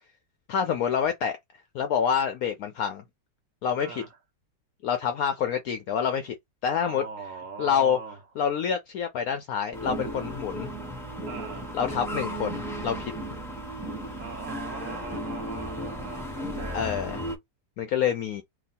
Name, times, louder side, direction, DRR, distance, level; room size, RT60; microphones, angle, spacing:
voice 1, 0.5-1.4 1.7-3.0 3.6-4.0 4.8-6.3 6.6-7.0 7.6-8.0 8.4-10.7 11.7-13.1 16.7-17.2 17.8-18.4, left 8 dB, 75° left, 0.8 m, -27 dB
voice 2, 3.8-4.2 6.8-8.2 11.2-11.8 14.2-17.1, right 4 dB, 55° right, 1.1 m, -40 dB
sound 1, 9.7-17.4, right 1 dB, 5° left, 0.3 m, -35 dB
3.0 x 2.3 x 4.1 m
omnidirectional pair, 1.9 m